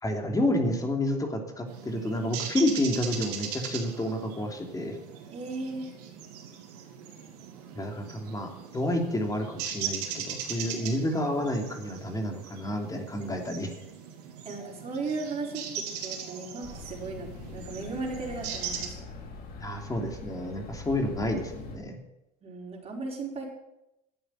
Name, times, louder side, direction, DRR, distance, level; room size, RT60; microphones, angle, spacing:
voice 1, 0.0-5.0 7.7-13.7 19.6-22.0, left 1 dB, 20° left, 3 dB, 3.0 m, -30 dB
sound 1, 1.7-18.9, right 8 dB, 90° right, 2.8 m, -39 dB
voice 2, 5.3-5.9 10.8-11.0 14.4-18.9 22.4-23.5, right 3 dB, 30° right, -2 dB, 5.2 m, -36 dB
sound 2, 16.6-21.8, left 3 dB, 50° left, 3.8 m, -43 dB
12.0 x 8.8 x 9.3 m, 0.88 s
supercardioid pair, 100°, 20 cm